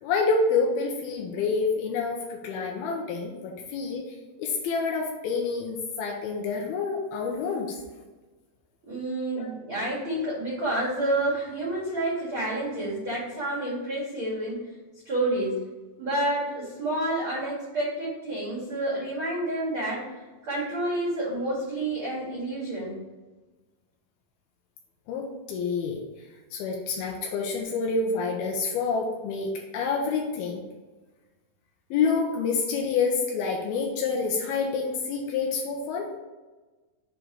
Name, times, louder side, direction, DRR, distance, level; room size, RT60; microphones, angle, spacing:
voice 1, 0.0-4.0 4.4-7.8 9.4-9.5 25.1-26.0 26.5-30.6 31.9-36.1, left 4 dB, 85° left, 0 dB, 2.2 m, -28 dB
voice 2, 8.8-14.7 15.0-15.6 16.0-20.0 20.4-23.0, right 1 dB, 50° right, -8 dB, 1.5 m, -29 dB
6.8 x 3.8 x 4.6 m, 1.2 s
omnidirectional pair, 5.3 m